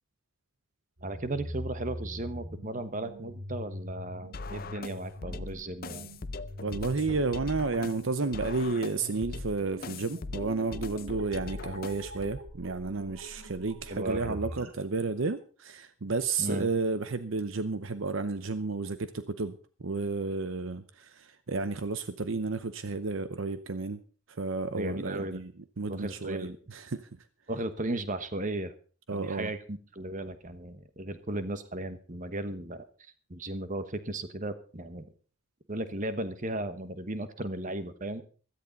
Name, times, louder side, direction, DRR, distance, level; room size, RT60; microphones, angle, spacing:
voice 1, 1.0-6.1 13.9-14.4 16.4-16.7 24.7-25.4 25.9-26.6 27.5-28.7 29.1-35.1 35.7-38.2, right 1 dB, 35° right, 11 dB, 1.2 m, -36 dB
sound 1, 1.0-14.7, equal, 90° right, 2.5 m, -44 dB
sound 2, 4.3-12.3, left 3 dB, 45° left, 0.6 m, -40 dB
voice 2, 6.6-24.0 24.3-25.5 25.8-27.3 29.1-29.5, right 3 dB, 60° right, 12 dB, 0.7 m, -32 dB
16.0 x 13.5 x 4.0 m, 0.40 s
head